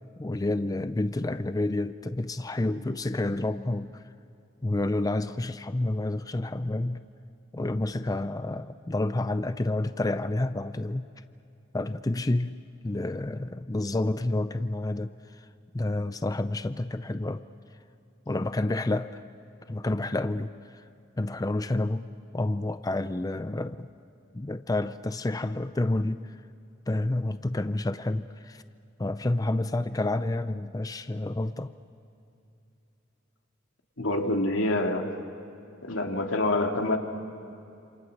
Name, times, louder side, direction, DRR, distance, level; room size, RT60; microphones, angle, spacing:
voice 1, 0.2-4.0 4.6-7.1 7.5-11.1 11.7-12.6 12.8-15.5 15.7-17.4 18.3-19.2 19.7-20.8 21.2-23.9 24.3-26.4 26.9-28.6 29.0-31.7, left 2 dB, 20° left, 12 dB, 0.5 m, -29 dB
voice 2, 34.0-35.2 35.8-37.0, left 2 dB, 90° left, 3 dB, 2.4 m, -26 dB
28.0 x 27.0 x 6.5 m, 2.8 s
head